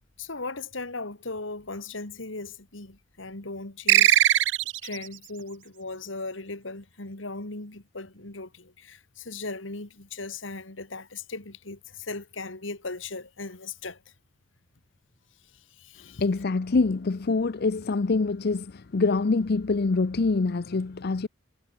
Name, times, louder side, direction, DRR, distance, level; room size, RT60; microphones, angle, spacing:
voice 1, 0.2-4.5 4.8-14.0 15.4-16.2, left 3 dB, 75° left, 2.8 m, -38 dB
sound 1, 3.9-5.1, right 13 dB, 65° right, 0.6 m, -19 dB
voice 2, 16.2-21.3, left 3 dB, 55° left, 0.6 m, -25 dB
head